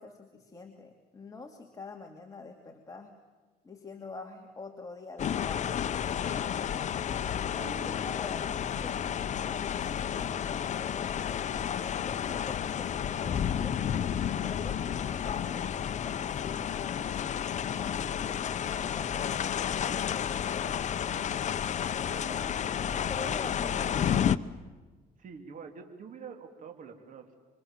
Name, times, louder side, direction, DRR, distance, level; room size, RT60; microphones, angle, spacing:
voice 1, 0.0-3.1 3.6-5.7 7.2-9.0 9.5-13.8 14.4-17.1 17.6-21.0 21.9-22.5 22.9-24.4, left 4 dB, 20° left, 2 dB, 2.7 m, -46 dB
sound 1, 5.2-24.4, left 9 dB, 45° left, 0.9 m, -31 dB
voice 2, 7.6-8.7 22.1-24.2 25.2-27.4, right 5 dB, 50° right, 5 dB, 3.5 m, -47 dB
28.0 x 25.5 x 7.5 m, 1.3 s
cardioid pair, 110°, 17 cm